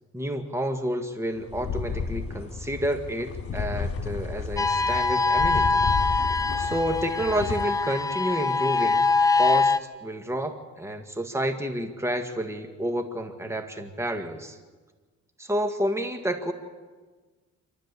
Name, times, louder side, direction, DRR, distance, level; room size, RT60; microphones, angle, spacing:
voice 1, 0.1-5.9 6.6-9.1 9.4-14.6 15.4-16.5, right 1 dB, 10° right, 6 dB, 1.8 m, -30 dB
sound 1, 1.4-7.6, left 5 dB, 50° left, 3.0 m, -32 dB
sound 2, 4.6-9.8, left 4 dB, 10° left, 0.9 m, -23 dB
26.5 x 12.5 x 8.3 m, 1.4 s
cardioid pair, 90°, 30 cm